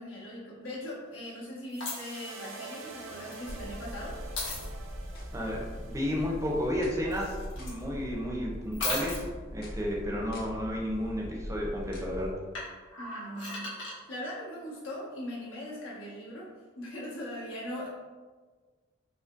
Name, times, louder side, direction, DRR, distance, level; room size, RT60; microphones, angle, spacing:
voice 1, 0.0-4.2 13.0-13.8 14.1-16.5 16.8-17.9, left 1 dB, 90° left, -6 dB, 1.3 m, -40 dB
sound 1, 1.7-8.0, right 3 dB, 85° right, 0.5 m, -47 dB
sound 2, 1.8-2.1 3.2-3.5 4.4-4.7 7.1-7.8 8.7-9.2 12.5-13.9 15.9-16.0, left 3 dB, 70° left, 1.4 m, -36 dB
sound 3, 3.4-12.3, equal, 50° left, 0.6 m, -41 dB
voice 2, 5.3-9.2 9.5-12.4, equal, 15° right, -2 dB, 0.5 m, -32 dB
5.0 x 2.1 x 2.4 m, 1.4 s
head